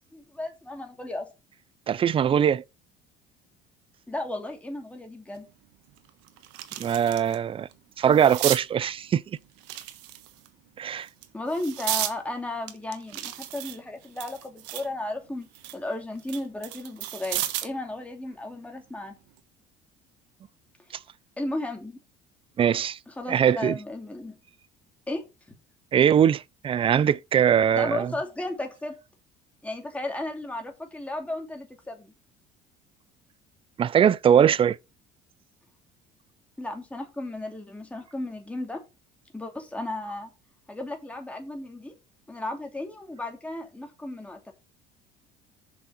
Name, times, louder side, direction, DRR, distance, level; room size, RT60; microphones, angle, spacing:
voice 1, 0.1-1.3 4.1-5.5 11.3-19.1 21.4-22.0 23.1-24.4 25.1-25.2 27.7-29.0 29.6-32.1 36.6-38.8 39.3-40.3 40.7-41.9 42.3-44.5, left 2 dB, 5° left, 2.8 m, -34 dB
voice 2, 1.9-2.6 6.8-7.7 8.0-9.2 10.8-11.1 22.6-23.0 23.3-23.8 25.9-28.1 33.8-34.8, right 8 dB, 30° right, 0.5 m, -21 dB
sound 1, 5.3-5.4 5.9-7.4 7.7-8.6 9.6-10.5 11.1-12.2 12.7-14.9 15.3-17.8 19.2-19.4, right 14 dB, 90° right, 1.3 m, -33 dB
7.1 x 6.2 x 5.6 m
cardioid pair, 125°, 18 cm